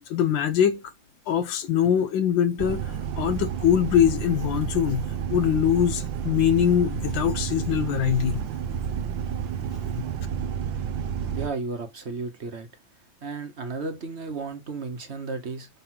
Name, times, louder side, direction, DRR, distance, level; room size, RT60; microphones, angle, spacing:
voice 1, 0.1-0.8 1.3-8.4, left 9 dB, 80° left, 1.4 m, -23 dB
sound 1, 2.6-11.5, right 8 dB, 75° right, 1.4 m, -30 dB
voice 2, 11.3-12.7 13.2-15.7, right 4 dB, 45° right, 1.0 m, -33 dB
6.7 x 3.0 x 5.7 m
omnidirectional pair, 2.1 m